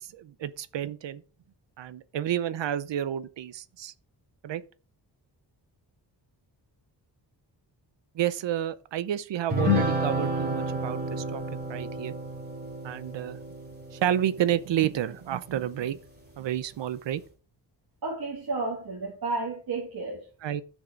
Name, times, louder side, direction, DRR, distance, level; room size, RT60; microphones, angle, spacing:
voice 1, 0.1-1.2 1.8-3.9 4.4-4.6 8.2-11.4 11.7-12.1 12.8-13.4 13.9-16.0 16.4-17.2 20.4-20.6, right 11 dB, 90° right, 0.8 m, -30 dB
sound 1, 9.5-15.2, left 1 dB, 25° right, 3.7 m, -30 dB
voice 2, 18.0-20.2, right 3 dB, 55° right, 2.8 m, -32 dB
11.5 x 6.5 x 5.2 m
wide cardioid pair, 145°, 42 cm